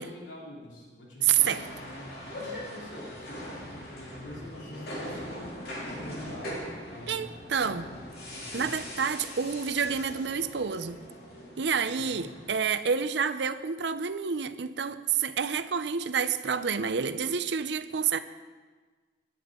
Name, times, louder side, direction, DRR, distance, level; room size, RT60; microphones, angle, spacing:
voice 1, 0.0-1.8 2.3-5.5 5.8-7.3 7.6-8.7 12.0-12.3, left 1 dB, 85° left, -4 dB, 3.3 m, -46 dB
voice 2, 1.2-1.7 7.1-7.9 8.5-11.0 11.6-18.2, right 7 dB, 70° right, 12 dB, 0.6 m, -28 dB
sound 1, 1.3-12.6, equal, 55° left, 2.7 m, -41 dB
18.0 x 11.0 x 3.7 m, 1.4 s
head